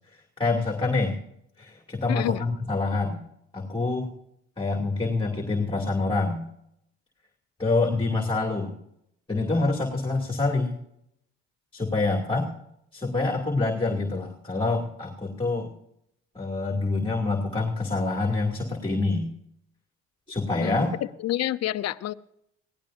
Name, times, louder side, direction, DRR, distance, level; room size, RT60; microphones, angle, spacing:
voice 1, 0.4-1.2 1.6-3.2 3.5-4.1 4.6-6.4 7.6-8.7 9.3-10.7 11.7-12.5 12.9-15.7 16.3-19.3 20.3-20.9, left 3 dB, 15° left, 2.5 m, -26 dB
voice 2, 2.1-2.5 20.6-20.9 21.2-22.1, left 13 dB, 55° left, 0.7 m, -28 dB
22.5 x 16.5 x 2.6 m
supercardioid pair, 65°, 30 cm